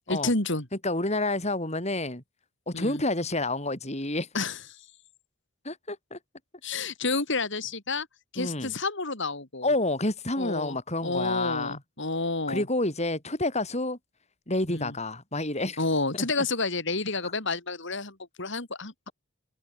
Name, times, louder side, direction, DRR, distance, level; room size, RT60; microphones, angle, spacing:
voice 1, 0.1-0.7 2.7-3.0 4.3-4.6 6.6-8.1 8.3-9.7 10.4-10.8 11.0-12.6 14.7-14.9 15.8-19.1, left 3 dB, 60° left, 3.8 m, -30 dB
voice 2, 0.8-2.2 2.7-4.3 5.6-6.2 8.4-8.7 9.6-11.8 12.5-14.0 14.5-15.8 16.1-16.5 17.2-17.3, left 2 dB, 30° left, 6.0 m, -29 dB
open air
head